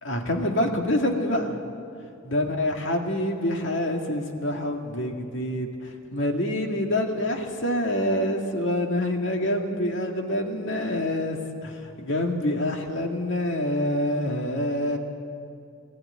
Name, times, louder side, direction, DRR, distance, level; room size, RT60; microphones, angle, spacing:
voice 1, 0.0-1.6 2.2-11.4 11.6-15.0, left 1 dB, 60° left, 2 dB, 2.1 m, -26 dB
20.0 x 14.5 x 9.7 m, 2.4 s
head